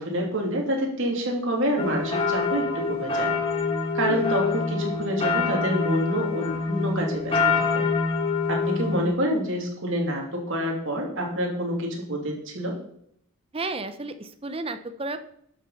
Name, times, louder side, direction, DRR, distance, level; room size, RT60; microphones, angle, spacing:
voice 1, 0.0-3.3 3.9-7.9 8.5-12.7, equal, 60° right, 0 dB, 3.0 m, -27 dB
sound 1, 1.8-9.1, left 4 dB, 25° left, 1.4 m, -25 dB
voice 2, 13.5-15.2, right 2 dB, 25° right, 10 dB, 0.7 m, -33 dB
12.0 x 6.3 x 5.8 m, 0.70 s
head